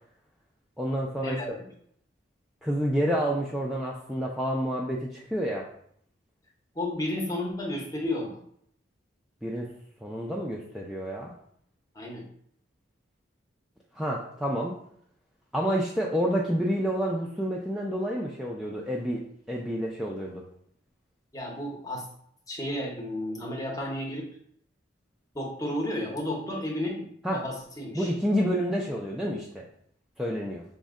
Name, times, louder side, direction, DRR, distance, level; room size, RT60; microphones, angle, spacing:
voice 1, 0.8-1.4 2.6-5.7 9.4-9.7 10.0-11.3 13.9-14.7 15.5-19.2 19.5-20.4 27.2-27.4 27.9-29.6 30.2-30.6, equal, ahead, -3 dB, 0.3 m, -29 dB
voice 2, 6.7-8.4 11.9-12.3 21.3-22.1 22.5-24.3 25.3-28.1, left 1 dB, 20° left, -1 dB, 0.7 m, -32 dB
5.2 x 2.1 x 3.6 m, 0.66 s
head